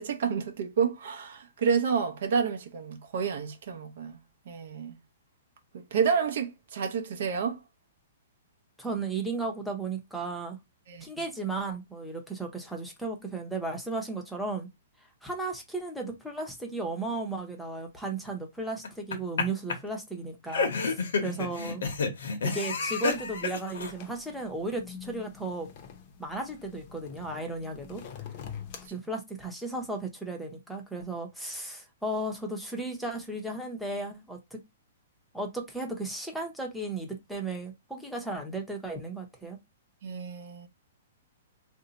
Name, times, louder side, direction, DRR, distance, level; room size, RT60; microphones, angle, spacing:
voice 1, 0.0-4.2 4.5-5.0 5.7-7.6 10.9-11.0 21.2-21.3 40.0-40.7, right 6 dB, 60° right, 0.6 m, -29 dB
voice 2, 8.8-10.6 11.0-14.7 15.2-21.8 22.4-25.7 26.2-28.2 28.9-34.6 35.3-39.6, right 2 dB, ahead, 0.7 m, -35 dB
sound 1, 18.8-19.4 19.7-19.8 20.5-23.9, left 4 dB, 80° left, 0.9 m, -29 dB
sound 2, 23.1-28.9, left 8 dB, 35° left, 0.6 m, -46 dB
2.6 x 2.1 x 3.9 m
hypercardioid pair, 160°, 0 cm